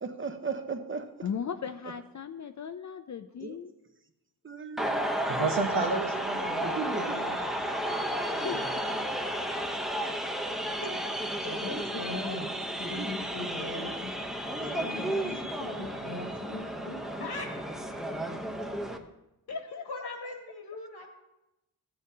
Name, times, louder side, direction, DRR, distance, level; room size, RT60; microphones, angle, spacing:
voice 1, 0.0-1.3 1.8-1.9 3.4-3.6 4.4-5.3 6.6-7.2 8.5-8.6 11.6-12.2 12.8-13.1 15.3-15.4, right 5 dB, 30° right, 7 dB, 0.9 m, -38 dB
voice 2, 1.2-3.7 8.4-9.1 19.5-19.9, left 7 dB, 50° left, 8 dB, 0.5 m, -37 dB
sound 1, 4.8-19.0, equal, ahead, 0.8 m, -33 dB
voice 3, 5.3-7.6, right 4 dB, 85° right, 1 dB, 1.0 m, -32 dB
voice 4, 11.4-12.5 12.8-14.1 14.7-17.5 19.5-21.1, left 2 dB, 85° left, 2 dB, 1.9 m, -39 dB
15.0 x 7.7 x 2.8 m, 0.93 s
wide cardioid pair, 110°, 38 cm